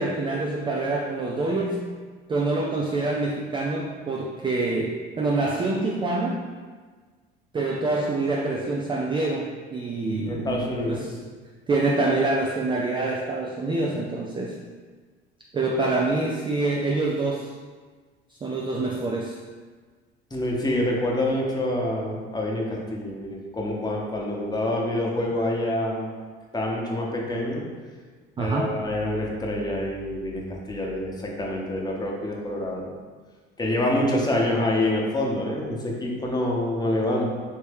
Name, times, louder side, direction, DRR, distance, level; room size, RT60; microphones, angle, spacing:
voice 1, 0.0-1.9 2.3-6.4 7.5-11.2 11.7-14.6 15.5-17.5 18.4-19.4 28.4-28.7, right 2 dB, 15° right, -1 dB, 0.4 m, -26 dB
voice 2, 10.3-11.0 20.3-26.1 26.5-27.6 28.4-32.9 33.6-37.3, left 1 dB, 15° left, -2 dB, 0.9 m, -26 dB
4.2 x 3.2 x 3.5 m, 1.5 s
figure-of-eight pair, 60°, 30 cm